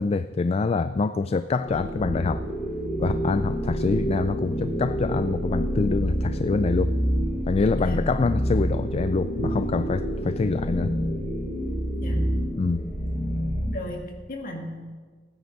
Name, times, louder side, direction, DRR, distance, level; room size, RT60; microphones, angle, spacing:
voice 1, 0.0-2.4 3.0-6.9 7.5-10.9 12.6-12.8, left 4 dB, 35° left, 12 dB, 0.3 m, -25 dB
sound 1, 1.6-13.7, equal, ahead, 4.4 m, -28 dB
voice 2, 7.8-8.1 12.0-12.3 13.7-14.8, left 1 dB, 50° left, 1 dB, 2.2 m, -35 dB
16.0 x 9.6 x 5.3 m, 1.5 s
head